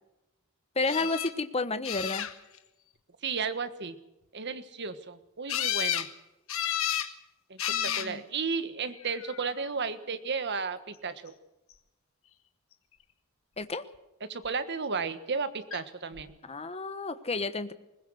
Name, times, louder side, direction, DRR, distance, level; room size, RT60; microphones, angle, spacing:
voice 1, 0.7-2.3 7.7-8.2 13.6-13.8 16.4-17.7, left 3 dB, 30° left, 11 dB, 1.1 m, -31 dB
sound 1, 0.9-1.3 1.8-2.6 5.5-6.1 6.5-7.1 7.6-8.1 9.0-9.5 15.7-15.8 16.2-16.3, left 10 dB, 65° left, 1.5 m, -31 dB
voice 2, 3.2-4.0 4.3-6.1 7.5-11.3 14.2-16.4, right 5 dB, 55° right, 11 dB, 1.4 m, -34 dB
21.5 x 20.0 x 6.4 m, 0.96 s
head